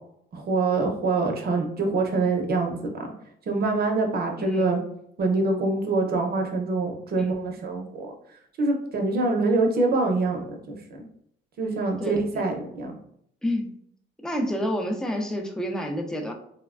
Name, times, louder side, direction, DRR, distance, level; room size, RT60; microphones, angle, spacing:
voice 1, 0.3-3.1 3.5-4.8 5.2-8.1 8.6-10.8 11.6-12.9, right 3 dB, 50° right, 2 dB, 0.7 m, -25 dB
voice 2, 4.4-4.7 7.2-7.4 12.0-12.4 13.4-13.7 14.2-16.3, equal, 5° left, 2 dB, 0.4 m, -29 dB
3.1 x 2.1 x 2.4 m, 0.72 s
cardioid pair, 90°, 20 cm